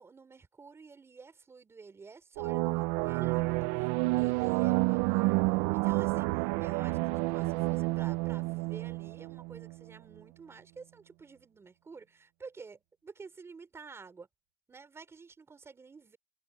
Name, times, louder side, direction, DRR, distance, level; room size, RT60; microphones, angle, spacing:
voice 1, 0.0-14.3 14.7-16.2, right 4 dB, 15° right, 4.7 m, -51 dB
sound 1, 2.4-9.7, right 24 dB, 90° right, 0.5 m, -29 dB
cardioid pair, 155°, 15 cm